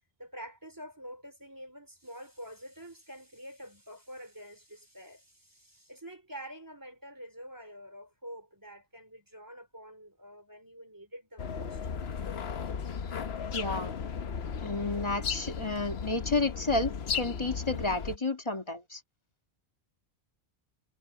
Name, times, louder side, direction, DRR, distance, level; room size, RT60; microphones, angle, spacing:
voice 1, 0.2-11.8, equal, 20° right, 3.0 m, -47 dB
sound 1, 11.4-18.2, left 6 dB, 70° left, 1.2 m, -35 dB
voice 2, 13.5-13.9 14.6-19.0, left 3 dB, 25° left, 1.8 m, -31 dB
omnidirectional pair, 1.1 m